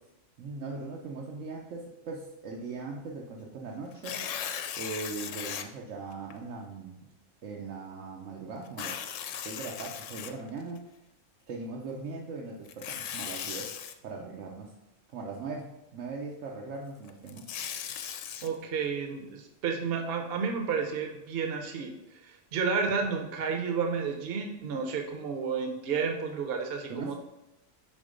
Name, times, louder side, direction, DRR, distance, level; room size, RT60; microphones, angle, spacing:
voice 1, 0.4-4.3 4.8-7.0 7.4-9.1 9.4-10.8 11.5-13.7 14.0-14.7 15.1-17.5 26.9-27.1, right 3 dB, 90° right, -2 dB, 1.1 m, -39 dB
Tearing, 3.9-5.7 6.3-6.4 8.7-10.8 12.7-13.9 17.1-18.5, left 8 dB, 85° left, 0.9 m, -37 dB
voice 2, 18.4-27.1, right 5 dB, 60° right, 4 dB, 0.9 m, -31 dB
5.5 x 3.9 x 5.0 m, 0.95 s
omnidirectional pair, 1.3 m